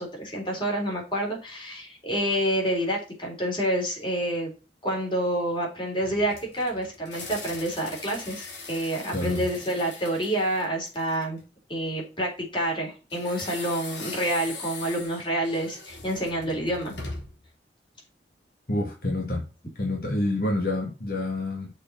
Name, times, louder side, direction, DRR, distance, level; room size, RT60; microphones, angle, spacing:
voice 1, 0.0-4.5 4.8-11.4 11.7-16.9, right 1 dB, 30° left, 3.4 m, -28 dB
sound 1, 6.0-11.4 13.1-17.5, left 3 dB, 75° left, 3.0 m, -41 dB
voice 2, 9.1-9.4 18.7-19.5 19.8-21.7, left 1 dB, 55° left, 1.7 m, -28 dB
6.7 x 4.4 x 5.8 m
head